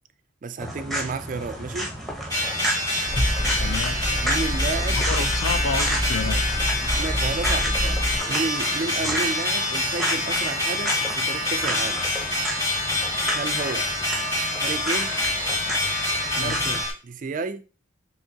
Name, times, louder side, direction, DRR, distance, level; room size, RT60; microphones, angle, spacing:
voice 1, 0.4-1.9 4.2-5.3 7.0-12.0 13.3-13.9 14.6-15.1 16.4-17.6, right 4 dB, 40° right, 0.3 m, -32 dB
sound 1, 0.6-16.8, right 1 dB, ahead, 0.9 m, -32 dB
sound 2, 2.3-16.9, left 1 dB, 15° left, 2.0 m, -26 dB
sound 3, 3.1-8.2, equal, 35° left, 2.6 m, -27 dB
voice 2, 3.6-4.0 4.9-6.5 9.0-9.1 16.4-16.6, left 4 dB, 85° left, 0.6 m, -30 dB
6.2 x 3.0 x 2.8 m
head